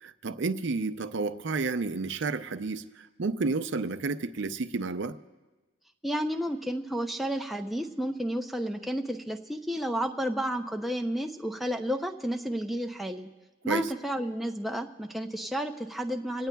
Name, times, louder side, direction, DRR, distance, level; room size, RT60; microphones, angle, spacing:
voice 1, 0.0-5.2 13.7-13.9, right 3 dB, 55° right, 11 dB, 0.5 m, -31 dB
voice 2, 6.0-13.3 13.6-16.5, equal, ahead, 3 dB, 0.5 m, -31 dB
25.5 x 18.0 x 2.3 m, 1.2 s
head